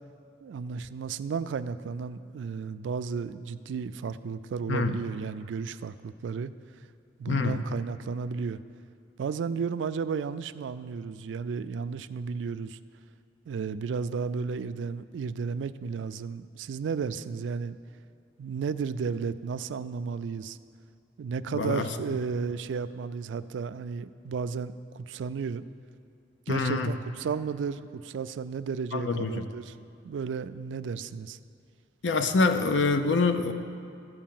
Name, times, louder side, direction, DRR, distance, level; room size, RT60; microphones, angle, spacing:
voice 1, 0.4-6.5 7.2-8.6 9.2-12.8 13.5-17.8 18.4-20.6 21.2-25.7 26.5-29.8 30.0-31.4, right 5 dB, 80° right, 14 dB, 0.3 m, -33 dB
voice 2, 7.3-7.6 21.5-21.9 26.5-26.9 28.9-29.4 32.0-33.5, left 3 dB, 85° left, 8 dB, 0.6 m, -25 dB
13.5 x 4.6 x 7.5 m, 2.3 s
head